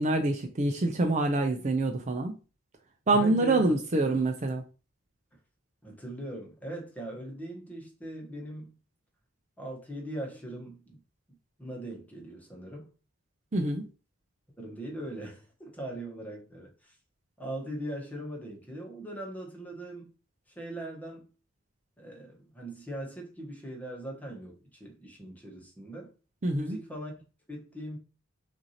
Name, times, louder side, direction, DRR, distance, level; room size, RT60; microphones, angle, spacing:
voice 1, 0.0-2.3 3.1-4.6 13.5-13.8 26.4-26.8, right 2 dB, 35° right, 0.5 m, -26 dB
voice 2, 3.1-3.7 5.8-8.8 9.6-11.0 11.6-12.9 14.6-16.9 17.4-20.1 20.5-21.3 22.0-26.1 26.5-27.1 27.5-28.0, right 1 dB, 10° left, 1.1 m, -40 dB
5.9 x 2.6 x 2.8 m
head